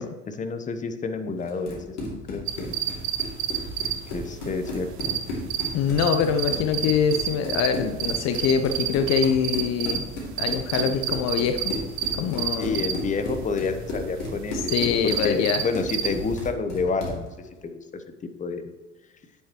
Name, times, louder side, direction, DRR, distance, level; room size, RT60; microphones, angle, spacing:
voice 1, 0.0-2.8 4.1-5.2 12.6-14.8 15.0-17.3 17.6-18.0 18.4-18.6, left 4 dB, 20° left, 8 dB, 0.9 m, -29 dB
Run, 1.4-17.3, left 1 dB, 65° left, 2.8 m, -35 dB
sound 1, 2.5-16.5, right 9 dB, 50° right, 1.1 m, -31 dB
voice 2, 5.7-10.0 10.4-11.7 12.1-12.8 14.7-15.6, left 7 dB, 45° left, 7 dB, 0.8 m, -24 dB
9.5 x 7.9 x 3.1 m, 1.2 s
figure-of-eight pair, 70°, 38 cm